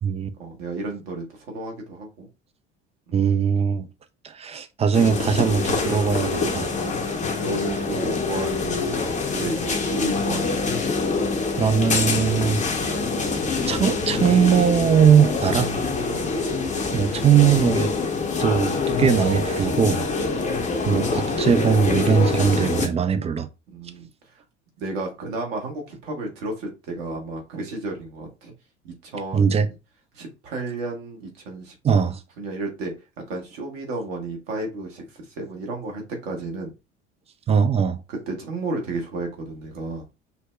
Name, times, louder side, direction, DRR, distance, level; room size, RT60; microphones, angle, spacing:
voice 1, 0.4-2.3 3.1-3.2 7.0-7.1 7.4-8.7 9.3-10.7 15.4-16.3 18.2-18.4 20.1-20.2 23.7-24.1 24.8-28.5 28.8-29.7 30.1-31.8 32.4-32.9 33.3-35.0 35.3-36.7 38.1-40.0, right 2 dB, 65° right, 1.3 m, -32 dB
voice 2, 3.1-3.9 4.2-6.7 11.6-12.6 13.7-15.7 16.9-17.9 18.4-20.0 20.9-23.5 29.3-29.7 31.8-32.2 37.5-38.0, right 7 dB, 20° right, 0.3 m, -20 dB
sound 1, 4.9-22.9, left 4 dB, 20° left, 0.7 m, -25 dB
5.5 x 2.1 x 2.3 m
figure-of-eight pair, 60°, 34 cm